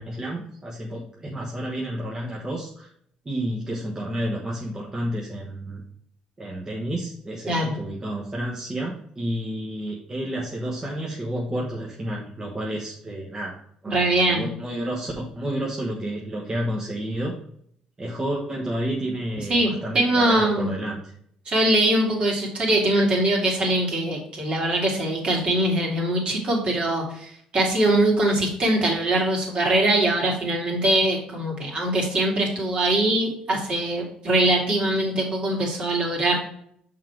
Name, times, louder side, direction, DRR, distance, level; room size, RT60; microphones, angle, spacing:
voice 1, 0.0-2.9 3.2-5.8 6.4-13.6 13.8-17.3 18.0-21.1, right 1 dB, 25° right, -3 dB, 1.3 m, -30 dB
voice 2, 13.9-14.5 19.5-20.7 21.5-36.4, right 1 dB, 45° right, -1 dB, 2.5 m, -22 dB
5.7 x 3.9 x 4.7 m, 0.67 s
supercardioid pair, 80°, 2 cm